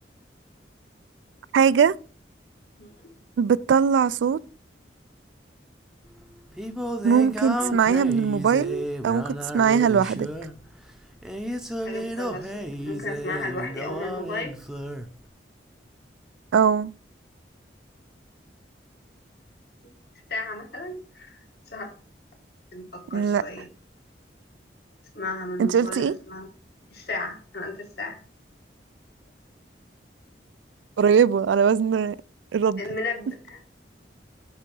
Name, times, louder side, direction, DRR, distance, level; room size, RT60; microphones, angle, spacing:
voice 1, 1.5-1.9 3.4-4.4 7.0-10.3 16.5-16.9 23.1-23.4 25.6-26.1 31.0-32.2 32.5-32.8, right 6 dB, 85° right, 0.3 m, -20 dB
Singing, 6.0-15.1, equal, 5° right, 0.6 m, -33 dB
voice 2, 11.9-14.6 20.3-21.4 21.7-21.9 22.7-23.7 25.1-26.5 26.9-28.2 32.8-33.7, left 2 dB, 60° left, 1.8 m, -34 dB
5.6 x 4.7 x 5.3 m
head